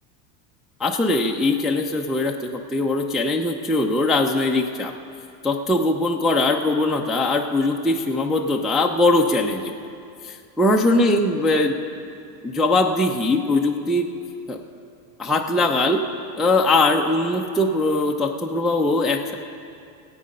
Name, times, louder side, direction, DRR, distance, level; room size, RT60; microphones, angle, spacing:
voice 1, 0.8-4.9 5.4-9.7 10.2-11.8 12.4-14.1 14.5-14.6 15.2-16.0 16.4-19.3, left 2 dB, ahead, 0 dB, 0.5 m, -21 dB
18.0 x 8.4 x 5.3 m, 2.5 s
supercardioid pair, 110°, 48 cm